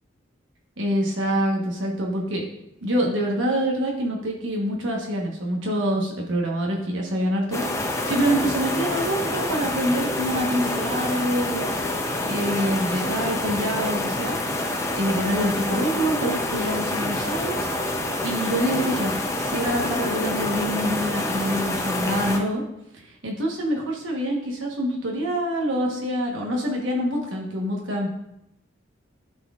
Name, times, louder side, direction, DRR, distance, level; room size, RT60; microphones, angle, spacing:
voice 1, 0.8-2.5 2.8-11.7 12.3-14.4 14.9-17.7 18.2-19.1 19.4-22.6 22.9-28.1, equal, 85° right, -1 dB, 1.1 m, -26 dB
sound 1, 7.5-22.4, left 1 dB, 15° left, 0.6 m, -27 dB
11.5 x 4.3 x 2.4 m, 0.81 s
head